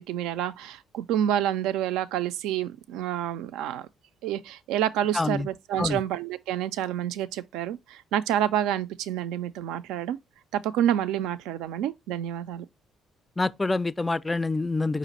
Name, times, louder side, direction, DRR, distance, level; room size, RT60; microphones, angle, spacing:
voice 1, 0.0-3.9 4.2-10.2 10.5-12.7, right 11 dB, 75° right, 0.3 m, -28 dB
voice 2, 5.1-5.5 5.8-6.0 13.4-15.0, left 3 dB, 20° left, 0.3 m, -26 dB
5.0 x 2.5 x 4.0 m
hypercardioid pair, 50°, 0 cm